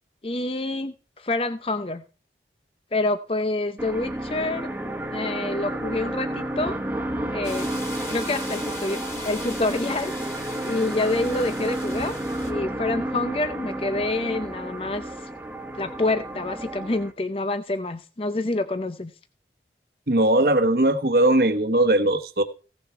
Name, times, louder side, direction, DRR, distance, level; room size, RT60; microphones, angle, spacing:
voice 1, 0.2-2.0 2.9-4.7 5.1-6.8 7.3-7.7 8.1-12.2 12.4-15.3 15.7-19.1, left 2 dB, 30° left, 0.6 m, -27 dB
sound 1, 3.8-17.1, right 1 dB, 10° right, 1.3 m, -31 dB
sound 2, 7.4-12.5, left 2 dB, 15° left, 2.1 m, -40 dB
voice 2, 20.1-22.4, right 1 dB, 60° right, 1.3 m, -19 dB
16.5 x 7.1 x 4.5 m
head